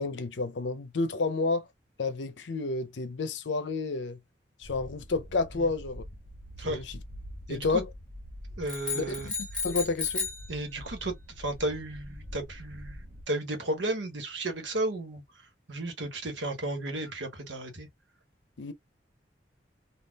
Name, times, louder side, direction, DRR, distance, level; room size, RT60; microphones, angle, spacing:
voice 1, 0.0-1.7 2.0-4.2 4.6-6.0 6.6-7.0 7.5-7.9 8.9-10.3 18.6-18.7, left 3 dB, 80° left, 0.6 m, -30 dB
sound 1, 4.6-13.2, equal, 50° right, 0.9 m, -45 dB
voice 2, 7.5-7.8 8.6-9.3 10.5-15.2 15.7-17.9, right 1 dB, 85° right, 1.2 m, -33 dB
sound 2, 8.7-10.5, left 4 dB, 5° left, 1.2 m, -33 dB
3.5 x 2.4 x 2.3 m
head